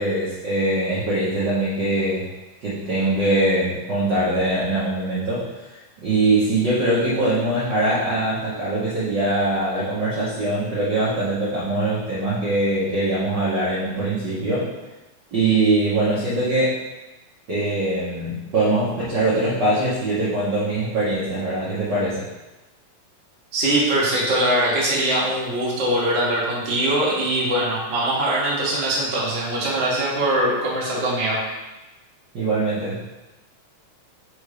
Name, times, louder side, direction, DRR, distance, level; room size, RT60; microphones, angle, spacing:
voice 1, 0.0-2.3 2.6-5.5 6.0-14.7 15.3-16.8 17.5-22.2 32.3-33.0, right 2 dB, 70° right, -9 dB, 1.0 m, -22 dB
voice 2, 23.5-31.4, right 1 dB, 50° right, -6 dB, 0.7 m, -22 dB
5.3 x 3.5 x 4.9 m, 1.1 s
omnidirectional pair, 3.8 m